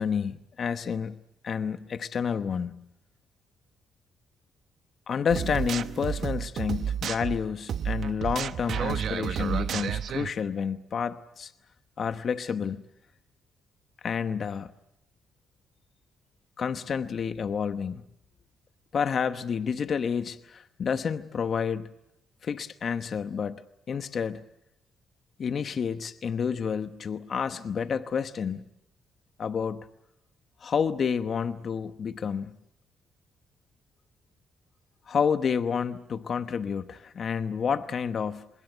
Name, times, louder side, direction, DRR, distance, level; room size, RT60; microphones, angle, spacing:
voice 1, 0.0-2.8 5.1-11.5 12.0-12.8 14.0-14.7 16.6-18.0 18.9-21.9 22.4-24.4 25.4-28.6 29.4-29.9 30.6-32.6 35.1-38.5, left 6 dB, 50° left, 1.0 m, -29 dB
sound 1, 5.3-10.3, right 8 dB, 65° right, 0.9 m, -31 dB
25.5 x 22.0 x 7.9 m
cardioid pair, 90°, 0 cm